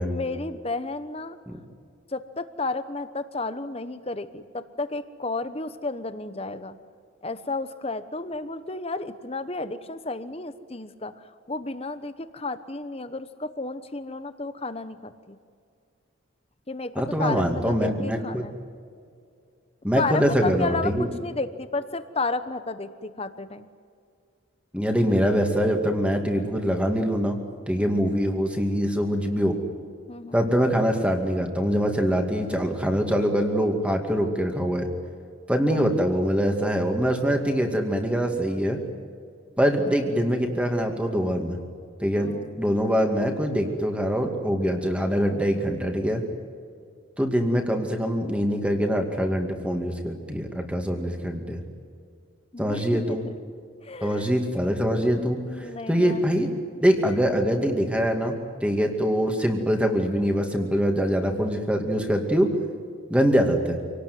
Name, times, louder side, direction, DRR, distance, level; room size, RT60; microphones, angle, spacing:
voice 1, 0.0-1.4 2.1-6.8 7.2-15.4 16.7-18.5 19.9-23.7 27.8-28.0 30.1-30.4 35.7-35.9 42.1-42.6 52.5-53.3 53.8-54.3 55.4-56.2, left 3 dB, 30° left, 12 dB, 1.1 m, -32 dB
voice 2, 17.0-18.5 19.8-21.1 24.7-27.4 27.7-29.6 30.3-34.9 35.5-38.8 39.6-41.6 42.0-46.2 47.2-51.6 52.6-53.3 54.0-56.5 56.8-62.6 63.1-63.8, equal, 5° right, 3 dB, 2.3 m, -24 dB
27.0 x 18.5 x 9.5 m, 2.3 s
head